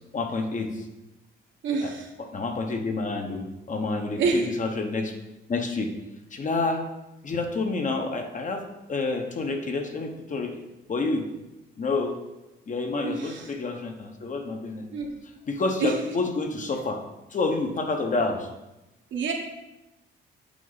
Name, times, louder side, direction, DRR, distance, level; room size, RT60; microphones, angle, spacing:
voice 1, 0.1-0.9 1.8-1.9 2.3-5.1 5.5-5.9 6.3-6.8 7.2-8.6 8.9-10.6 10.9-11.3 11.8-12.2 12.7-14.9 15.5-17.0 17.3-18.5, left 3 dB, 40° left, 4 dB, 1.1 m, -28 dB
voice 2, 1.6-2.1 4.2-4.5 13.0-13.5 14.9-15.1 15.8-16.0 19.1-19.3, right 4 dB, 70° right, 1 dB, 1.4 m, -27 dB
8.3 x 4.6 x 4.1 m, 1.0 s
cardioid pair, 90°, 20 cm